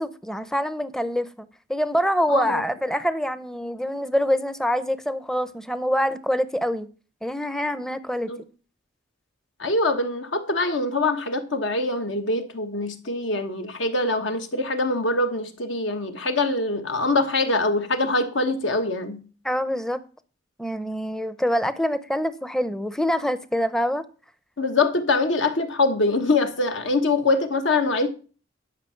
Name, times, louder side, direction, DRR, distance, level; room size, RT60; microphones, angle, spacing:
voice 1, 0.0-6.9 7.2-8.3 19.4-20.0 20.6-24.0, equal, 5° left, 0.6 m, -25 dB
voice 2, 2.3-2.6 8.3-8.4 9.6-19.2 24.6-28.1, left 2 dB, 70° left, 1.4 m, -24 dB
11.0 x 5.8 x 5.8 m
head